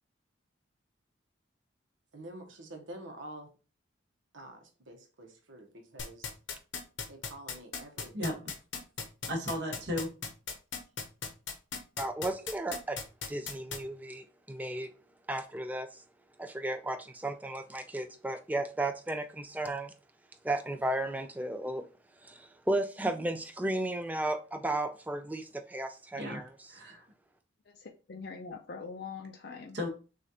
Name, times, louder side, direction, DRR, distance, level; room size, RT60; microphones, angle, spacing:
voice 1, 2.1-3.5 4.3-6.3 7.1-8.4, right 1 dB, 85° right, 1.1 m, -48 dB
sound 1, 6.0-13.8, left 5 dB, 75° left, 0.9 m, -37 dB
voice 2, 9.3-10.1 26.2-26.4 26.7-27.0 29.7-29.9, left 1 dB, 60° right, 1.3 m, -34 dB
voice 3, 12.0-13.0 13.3-14.9 15.3-16.0 16.4-19.9 20.4-21.8 22.2-26.5, right 1 dB, 10° right, 0.4 m, -34 dB
voice 4, 27.7-29.8, left 5 dB, 55° left, 0.5 m, -43 dB
6.3 x 2.5 x 2.8 m
head